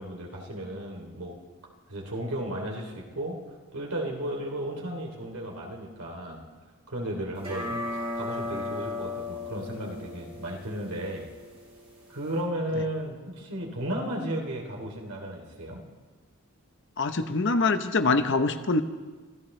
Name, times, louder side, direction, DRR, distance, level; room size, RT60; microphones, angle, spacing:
voice 1, 0.0-1.4 1.9-3.4 3.7-6.4 6.9-11.3 12.1-15.8, right 1 dB, 85° right, 0 dB, 3.1 m, -34 dB
sound 1, 7.4-12.4, left 2 dB, 25° right, 3.9 m, -36 dB
voice 2, 17.0-18.8, left 3 dB, 55° left, 9 dB, 0.9 m, -24 dB
25.0 x 14.5 x 3.3 m, 1.3 s
head